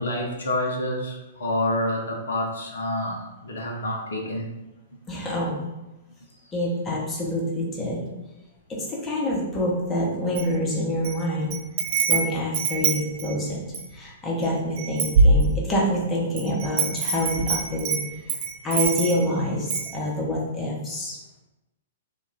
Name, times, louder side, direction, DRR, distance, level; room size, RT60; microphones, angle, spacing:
voice 1, 0.0-4.5, left 1 dB, 70° left, 0 dB, 0.5 m, -28 dB
voice 2, 5.1-5.6 6.5-8.0 8.7-11.6 12.1-13.6 13.9-18.0 18.6-21.2, equal, 20° left, -3 dB, 0.8 m, -26 dB
Wind chime, 10.3-11.2 11.5-13.9 14.4-14.5 14.8-15.9 16.4-19.3 19.7-19.9, right 4 dB, 45° right, 0.5 m, -23 dB
2.3 x 2.3 x 3.2 m, 1.0 s
figure-of-eight pair, 110°, 0 cm